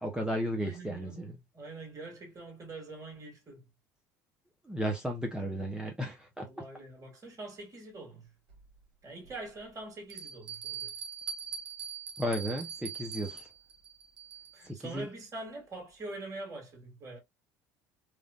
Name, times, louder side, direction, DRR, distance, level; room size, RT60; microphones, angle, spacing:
voice 1, 0.0-1.4 4.7-6.5 12.2-13.5 14.7-15.1, equal, 10° right, 0.8 m, -34 dB
voice 2, 0.6-3.7 6.4-8.3 9.0-10.9 14.5-17.2, right 2 dB, 35° right, 2.1 m, -44 dB
Bell, 8.5-8.6 9.3-9.4 10.1-14.7, right 7 dB, 60° right, 1.5 m, -42 dB
3.2 x 2.5 x 2.3 m
hypercardioid pair, 75°, 9 cm